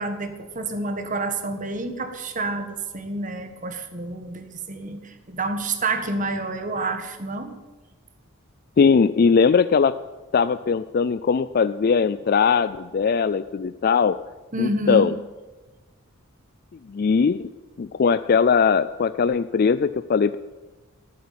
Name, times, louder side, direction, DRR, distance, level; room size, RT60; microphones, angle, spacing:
voice 1, 0.0-7.6 14.5-15.1, right 2 dB, 35° right, 7 dB, 1.5 m, -28 dB
voice 2, 8.8-9.9 10.3-14.2 14.6-15.1 16.9-17.5 17.8-20.4, left 5 dB, 45° left, 13 dB, 0.3 m, -20 dB
15.5 x 8.3 x 8.7 m, 1.2 s
head